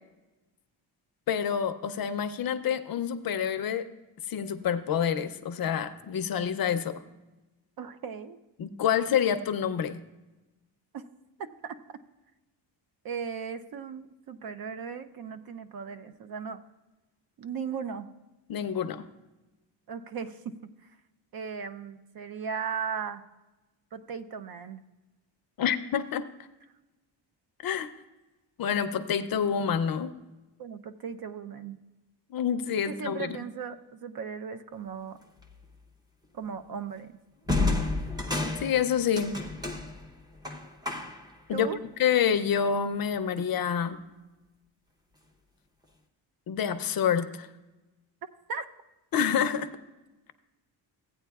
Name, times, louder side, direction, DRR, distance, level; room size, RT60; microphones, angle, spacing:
voice 1, 1.3-3.9 4.3-7.0 8.6-10.0 18.5-19.0 25.6-26.2 27.6-27.9 28.6-30.1 32.3-33.4 38.6-39.4 41.5-41.7 42.0-44.0 46.5-47.5 49.1-49.7, left 8 dB, 50° left, 10 dB, 0.6 m, -27 dB
voice 2, 7.8-8.4 10.9-11.1 11.4-11.8 13.0-16.6 17.4-18.1 19.9-20.6 21.3-23.2 23.9-24.8 30.6-31.8 32.9-35.2 36.3-37.1 41.5-41.8 48.5-48.7, right 6 dB, 50° right, 11 dB, 0.6 m, -37 dB
sound 1, 35.4-35.7 37.5-41.4, left 2 dB, 10° right, 0.7 m, -31 dB
16.0 x 9.0 x 2.3 m, 1.1 s
cardioid pair, 155°, 46 cm